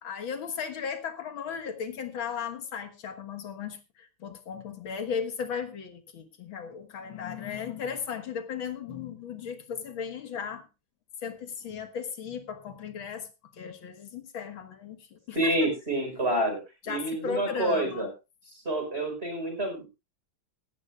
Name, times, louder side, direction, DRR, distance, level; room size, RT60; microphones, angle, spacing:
voice 1, 0.0-10.7 11.2-13.3 13.5-15.7 16.9-18.1, left 7 dB, 80° left, 7 dB, 2.4 m, -36 dB
voice 2, 15.4-16.6 16.9-18.1 18.7-19.9, right 1 dB, 30° right, 4 dB, 5.2 m, -28 dB
17.0 x 13.5 x 2.4 m, 0.28 s
omnidirectional pair, 2.2 m